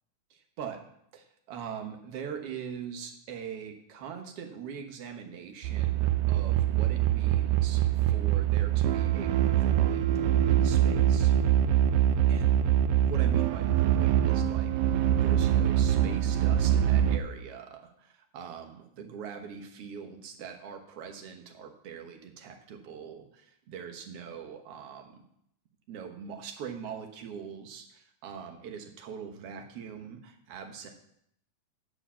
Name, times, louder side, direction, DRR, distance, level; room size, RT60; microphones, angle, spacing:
voice 1, 0.3-0.8 1.1-11.3 12.3-12.6 13.0-25.2 25.9-30.9, right 7 dB, 60° right, 4 dB, 2.0 m, -42 dB
sound 1, 5.6-17.2, right 11 dB, 80° right, 1.4 m, -24 dB
11.5 x 5.0 x 7.4 m, 0.74 s
omnidirectional pair, 3.3 m